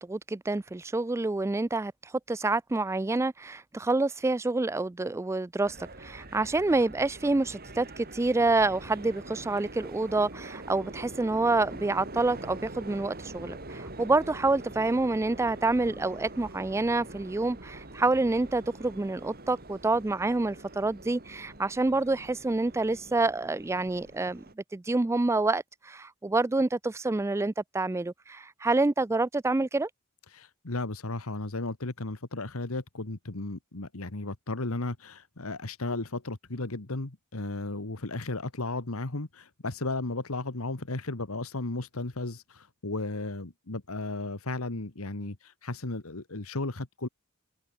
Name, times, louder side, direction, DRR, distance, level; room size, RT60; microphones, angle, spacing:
voice 1, 0.0-24.4 24.7-29.9, right 2 dB, 10° right, 0.3 m, -27 dB
sound 1, 5.6-24.5, right 2 dB, 45° right, 5.7 m, -44 dB
voice 2, 30.3-47.1, left 2 dB, 70° left, 1.7 m, -34 dB
head